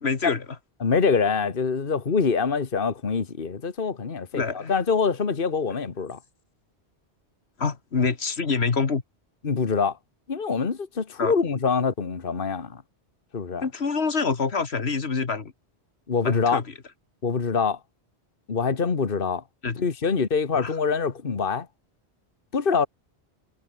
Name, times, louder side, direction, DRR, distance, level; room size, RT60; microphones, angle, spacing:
voice 1, 0.0-0.5 4.3-4.7 7.6-9.0 11.2-11.3 13.6-15.5 16.2-16.6 19.6-19.8 20.5-20.7, left 4 dB, 70° left, 2.0 m, -26 dB
voice 2, 0.8-6.2 9.4-10.0 10.3-12.8 13.3-13.7 16.1-16.6 17.2-17.8 18.5-19.4 19.8-21.7 22.5-22.9, left 5 dB, 55° left, 1.7 m, -25 dB
omnidirectional pair, 1.1 m